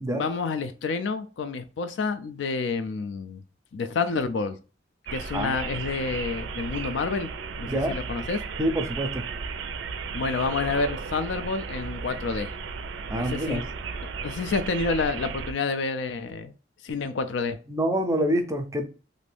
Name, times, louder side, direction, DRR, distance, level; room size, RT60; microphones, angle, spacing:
voice 1, 0.1-3.4 3.7-4.6 5.1-8.4 10.1-12.5 13.1-13.6 14.2-16.5 16.8-17.6, left 4 dB, 70° left, 0.4 m, -29 dB
sound 1, 5.1-15.5, right 5 dB, 75° right, 0.4 m, -35 dB
voice 2, 7.7-8.0 8.6-9.2 13.1-13.6 17.7-18.9, right 1 dB, 15° right, 0.5 m, -26 dB
2.6 x 2.5 x 3.3 m
head